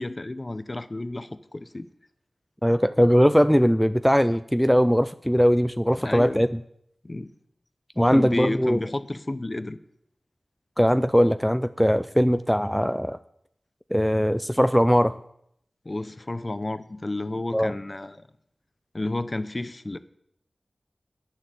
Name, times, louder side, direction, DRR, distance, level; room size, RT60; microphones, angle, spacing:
voice 1, 0.0-1.9 6.0-6.5 7.0-7.3 8.0-9.8 15.8-18.3 18.9-20.0, left 2 dB, 35° left, 13 dB, 0.6 m, -31 dB
voice 2, 2.6-6.6 8.0-8.8 10.8-13.2 13.9-15.1 17.5-17.7, equal, ahead, 11 dB, 0.4 m, -20 dB
9.1 x 6.6 x 7.5 m, 0.73 s
wide cardioid pair, 50°, 0 cm